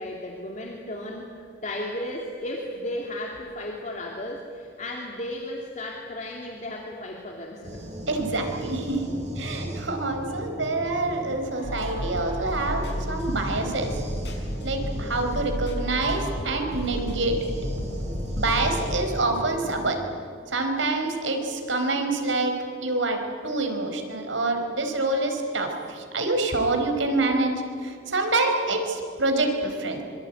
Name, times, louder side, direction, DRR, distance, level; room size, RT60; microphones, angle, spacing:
voice 1, 0.0-7.8 10.3-10.4, left 1 dB, 40° left, 0 dB, 2.7 m, -34 dB
sound 1, 7.6-19.9, equal, 40° right, 7.4 m, -37 dB
voice 2, 8.1-9.1 9.4-13.9 14.6-17.4 18.4-20.0 20.5-27.5 27.8-30.0, right 2 dB, 90° right, 4 dB, 4.5 m, -26 dB
sound 2, 11.6-19.1, equal, 70° left, 6.6 m, -32 dB
25.5 x 24.0 x 9.3 m, 2.4 s
head